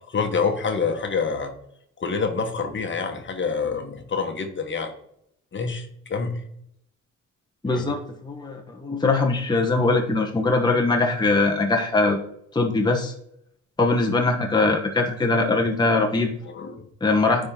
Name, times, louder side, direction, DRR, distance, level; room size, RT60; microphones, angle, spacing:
voice 1, 0.0-1.5 2.0-4.9 5.5-6.4 7.7-7.9 16.5-16.8, left 5 dB, 40° left, 5 dB, 1.2 m, -27 dB
voice 2, 7.6-12.2 12.5-13.1 13.8-16.3 17.0-17.5, left 3 dB, 15° left, 1 dB, 1.0 m, -21 dB
9.7 x 3.8 x 3.7 m, 0.72 s
cardioid pair, 90°, 30 cm